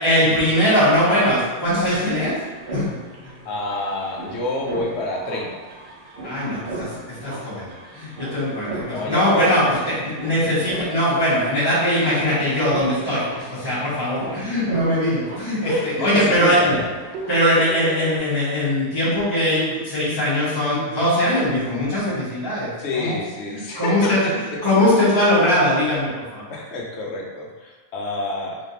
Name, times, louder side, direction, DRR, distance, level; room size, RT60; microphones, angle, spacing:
voice 1, 0.0-2.4 2.7-2.9 6.2-7.0 7.2-16.7 17.3-22.7 22.9-23.2 23.5-26.5, left 1 dB, 20° left, -12 dB, 1.1 m, -21 dB
sound 1, 1.5-18.2, right 2 dB, 50° right, 0.7 m, -37 dB
voice 2, 3.4-5.6 7.4-7.5 8.9-9.9 13.3-13.5 14.3-14.4 15.6-16.9 20.5-20.8 22.8-24.3 26.5-28.6, left 2 dB, 60° left, -1 dB, 0.9 m, -28 dB
4.0 x 3.4 x 2.8 m, 1.3 s
omnidirectional pair, 1.5 m